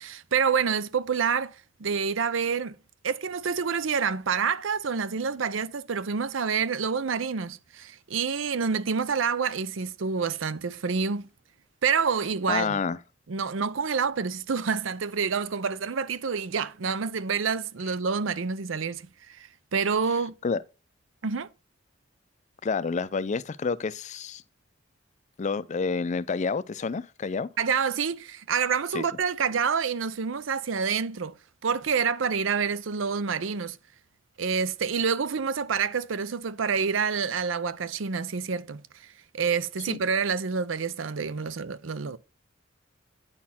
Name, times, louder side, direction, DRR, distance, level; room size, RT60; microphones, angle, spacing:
voice 1, 0.0-2.8 3.0-11.3 11.8-12.8 13.3-20.3 21.2-21.5 27.6-31.3 31.6-33.8 34.4-38.8 39.3-42.2, right 6 dB, 80° right, 0.6 m, -28 dB
voice 2, 12.5-13.0 20.4-20.6 22.6-24.4 25.4-27.5 28.9-29.0 39.9-40.0, left 5 dB, 40° left, 0.4 m, -29 dB
9.7 x 4.2 x 5.7 m
head